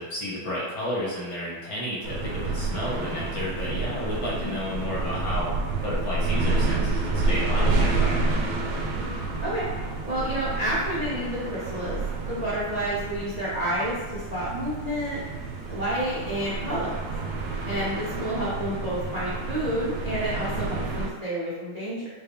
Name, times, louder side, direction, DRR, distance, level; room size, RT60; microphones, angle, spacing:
voice 1, 0.0-5.5 5.8-8.3, left 1 dB, 65° left, -7 dB, 2.2 m, -32 dB
sound 1, 2.0-21.1, right 3 dB, 80° right, 1.5 m, -29 dB
voice 2, 10.0-12.0 12.3-15.2 15.7-16.9 17.7-22.1, right 1 dB, 45° right, -8 dB, 0.5 m, -29 dB
5.7 x 2.4 x 3.4 m, 1.3 s
omnidirectional pair, 2.2 m